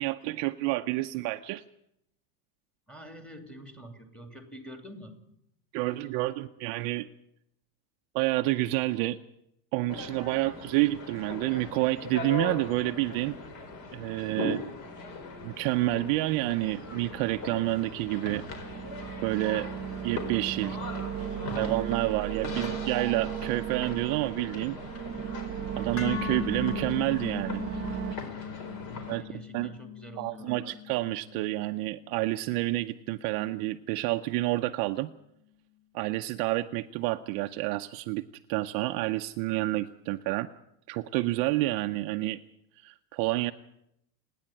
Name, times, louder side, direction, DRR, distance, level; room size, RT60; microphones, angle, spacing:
voice 1, 0.0-1.6 5.7-7.1 8.1-9.2 9.7-13.4 13.9-14.6 15.4-18.4 19.2-19.7 20.0-20.8 21.6-24.8 25.8-27.6 29.1-29.2 29.5-29.7 30.2-35.1 35.9-40.5 40.9-42.4 42.8-43.5, right 18 dB, 45° right, 7 dB, 0.7 m, -29 dB
voice 2, 2.9-5.1 20.6-20.9 21.3-21.7 28.8-30.8, right 1 dB, ahead, 5 dB, 2.7 m, -47 dB
sound 1, 9.9-29.2, left 3 dB, 45° left, 4.5 m, -40 dB
sound 2, 16.6-28.2, right 9 dB, 30° right, 1.2 m, -37 dB
sound 3, 26.0-34.1, left 11 dB, 25° left, 1.5 m, -40 dB
28.5 x 10.5 x 8.8 m, 0.78 s
supercardioid pair, 150°, 48 cm